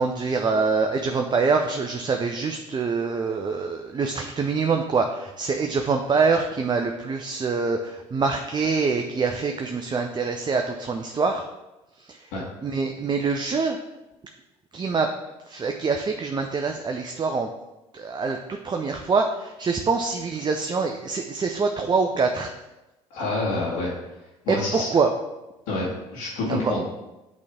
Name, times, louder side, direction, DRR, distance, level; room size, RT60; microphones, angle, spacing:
voice 1, 0.0-11.5 12.1-12.2 12.6-13.8 14.7-15.1 15.5-17.5 17.9-22.5 24.5-25.1 26.5-26.7, right 4 dB, 30° right, 4 dB, 0.6 m, -25 dB
voice 2, 23.1-24.0 24.4-24.9 25.7-26.9, left 2 dB, 80° left, -8 dB, 1.8 m, -27 dB
8.3 x 3.2 x 3.6 m, 1.0 s
hypercardioid pair, 65°, 16 cm